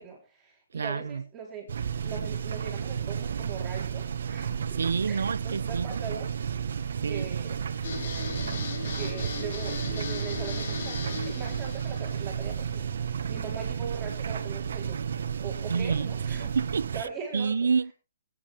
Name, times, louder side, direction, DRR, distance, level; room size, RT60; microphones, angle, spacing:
voice 1, 0.0-1.7 2.0-4.6 5.1-6.3 7.1-7.6 8.9-12.9 13.3-15.0 15.4-16.5 16.9-17.7, right 6 dB, 10° right, 3.7 m, -40 dB
voice 2, 0.7-1.2 4.7-6.2 7.0-7.5 15.7-17.1 17.3-17.9, right 5 dB, 85° right, 0.6 m, -29 dB
sound 1, 1.7-17.0, right 7 dB, 60° right, 1.4 m, -32 dB
sound 2, 7.8-12.8, left 4 dB, 50° left, 3.3 m, -37 dB
19.0 x 9.8 x 3.5 m
hypercardioid pair, 170°, 0 cm